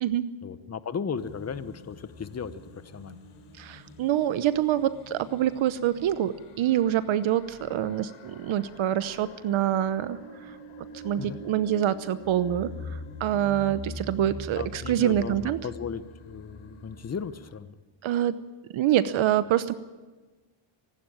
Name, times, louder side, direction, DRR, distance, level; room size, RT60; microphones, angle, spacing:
voice 1, 0.4-3.2 11.2-11.4 14.6-17.7, left 6 dB, 30° left, 13 dB, 1.1 m, -36 dB
sound 1, 1.2-17.6, left 2 dB, 85° left, 3.7 m, -44 dB
voice 2, 3.6-10.2 11.0-12.7 13.2-15.6 18.0-18.3 18.7-19.7, right 11 dB, 70° right, 13 dB, 1.0 m, -25 dB
25.0 x 11.5 x 8.9 m, 1.2 s
cardioid pair, 100°, 49 cm